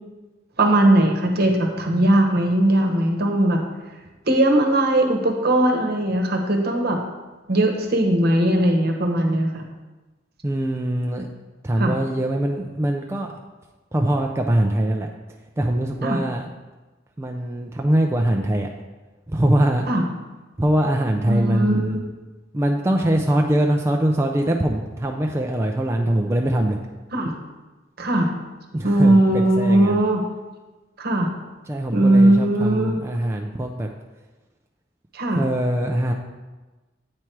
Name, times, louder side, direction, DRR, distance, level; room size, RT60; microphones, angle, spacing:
voice 1, 0.6-3.6 4.3-7.0 7.5-9.6 11.8-11.9 16.0-16.2 19.9-20.0 21.3-22.0 27.1-27.3 28.0-28.4 28.8-30.2 31.0-31.4 31.9-33.0 35.1-35.4, right 1 dB, 55° right, 3 dB, 1.0 m, -19 dB
voice 2, 10.4-11.3 11.6-13.3 13.9-15.1 15.6-16.5 17.2-18.7 19.3-19.9 20.6-22.0 22.5-26.8 28.7-30.0 31.7-33.9 35.3-36.1, right 1 dB, 15° right, 1 dB, 0.4 m, -22 dB
8.5 x 4.6 x 4.5 m, 1.2 s
head